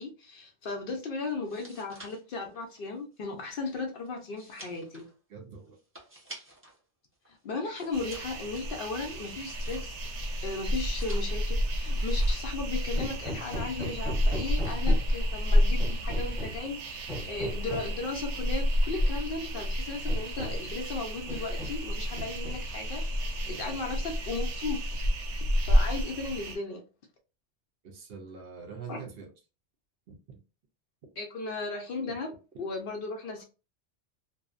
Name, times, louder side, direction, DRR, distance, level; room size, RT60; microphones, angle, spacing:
voice 1, 0.0-5.1 7.3-10.1 10.4-24.8 25.7-26.8 28.9-29.0 31.2-33.4, left 3 dB, 60° left, 0.6 m, -36 dB
sound 1, 1.3-6.8 7.1-10.2 10.6-11.5 11.9-12.6 12.8-13.2, right 1 dB, 20° right, 0.3 m, -51 dB
voice 2, 5.3-5.8 14.6-15.0 23.4-24.2 27.8-29.3 30.1-30.4 32.1-32.2, right 5 dB, 65° right, 0.7 m, -45 dB
sound 2, 7.9-26.6, equal, 90° right, 0.9 m, -29 dB
Hammer, 13.0-15.2 15.8-16.7 17.1-18.0 19.0-19.1 19.5-19.7 20.1-20.7 21.3-21.9 22.2-22.8, equal, 5° left, 0.9 m, -39 dB
2.6 x 2.0 x 2.4 m
omnidirectional pair, 1.2 m